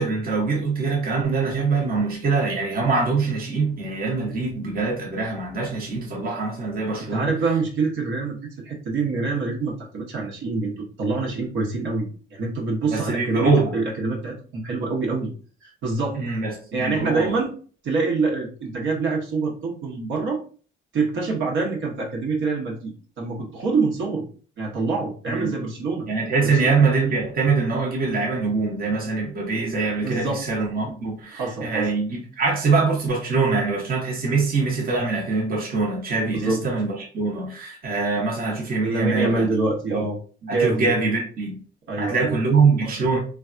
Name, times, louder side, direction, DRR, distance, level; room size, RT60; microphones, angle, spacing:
voice 1, 0.0-7.3 12.9-13.7 16.2-17.4 25.3-25.5 26.1-39.5 39.9-40.1 40.5-41.6 42.0-43.2, right 4 dB, 50° right, 0.9 m, -23 dB
voice 2, 7.1-8.4 8.6-15.3 15.6-16.2 16.7-17.5 17.8-20.4 20.9-24.2 24.6-26.1 26.4-26.7 30.0-30.4 31.3-31.9 36.3-36.6 38.8-40.2 40.4-40.9 41.9-42.4, right 3 dB, 75° right, 1.0 m, -25 dB
3.3 x 2.3 x 2.5 m
cardioid pair, 90°, 20 cm